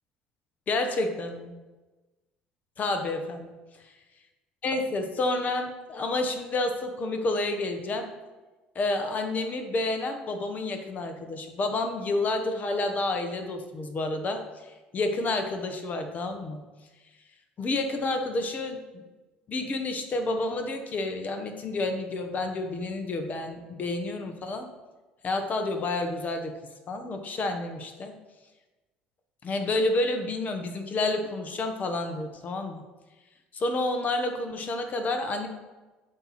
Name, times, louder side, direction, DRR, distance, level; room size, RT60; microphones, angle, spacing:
voice 1, 0.7-1.5 2.8-3.5 4.6-8.1 8.7-16.6 17.6-19.0 19.5-24.7 25.2-26.6 26.9-28.1 29.4-32.8 33.5-35.5, left 2 dB, 40° left, 6 dB, 1.0 m, -29 dB
7.9 x 3.0 x 5.6 m, 1.2 s
hypercardioid pair, 65°, 4 cm